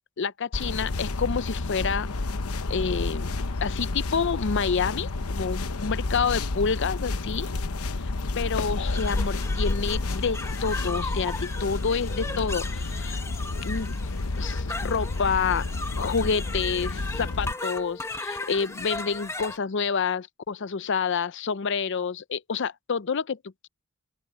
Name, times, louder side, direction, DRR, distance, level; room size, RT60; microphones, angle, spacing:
voice 1, 0.2-2.1 2.7-3.3 3.6-7.5 8.4-13.2 13.6-13.9 14.4-15.6 16.0-23.4, left 5 dB, 55° left, 0.5 m, -28 dB
sound 1, 0.5-17.5, left 2 dB, 90° left, 0.9 m, -30 dB
sound 2, 8.8-19.6, left 2 dB, 15° left, 1.0 m, -37 dB
open air
head